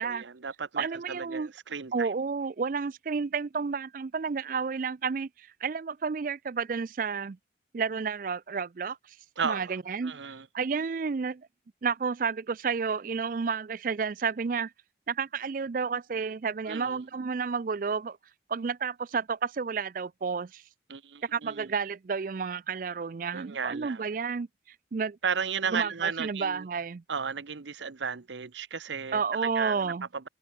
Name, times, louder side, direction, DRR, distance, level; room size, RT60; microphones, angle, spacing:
voice 1, 0.0-2.2 9.4-10.5 16.7-17.0 20.9-21.7 23.3-24.0 25.2-26.7 27.1-30.3, right 6 dB, 80° right, 0.9 m, -34 dB
voice 2, 0.8-1.5 1.9-7.4 7.7-9.2 9.4-11.5 11.8-14.7 15.1-18.2 18.5-20.6 21.3-24.5 24.9-25.2 25.7-27.0 29.1-30.1, right 5 dB, 45° right, 0.4 m, -31 dB
head